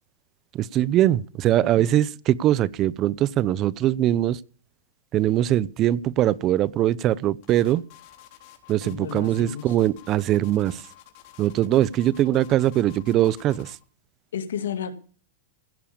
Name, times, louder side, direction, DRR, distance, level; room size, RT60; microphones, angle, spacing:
voice 1, 0.5-4.4 5.1-7.8 8.7-10.8 11.4-13.8, right 13 dB, 35° right, 0.7 m, -22 dB
sound 1, 7.4-13.8, left 12 dB, 50° left, 3.5 m, -51 dB
voice 2, 8.8-9.7 14.3-14.9, left 8 dB, 85° left, 2.4 m, -32 dB
16.5 x 7.0 x 8.7 m
hypercardioid pair, 130°, 0 cm